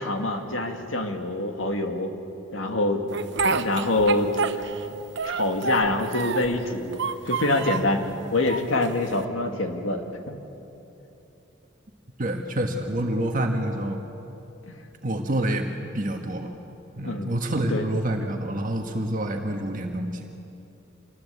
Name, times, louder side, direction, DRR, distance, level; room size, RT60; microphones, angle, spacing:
voice 1, 0.0-2.1 2.5-3.0 3.5-4.3 5.2-7.0 7.3-8.0 8.3-10.4 14.7-14.9 17.0-17.4 17.7-17.9, left 2 dB, 90° left, 4 dB, 2.3 m, -25 dB
Speech, 3.1-4.9 5.2-6.6 6.9-7.9 8.5-9.2, right 4 dB, 65° right, 1.0 m, -28 dB
voice 2, 12.2-14.0 15.0-16.5 17.0-20.3, right 1 dB, 45° right, 3 dB, 1.5 m, -27 dB
26.5 x 20.0 x 8.2 m, 3.0 s
head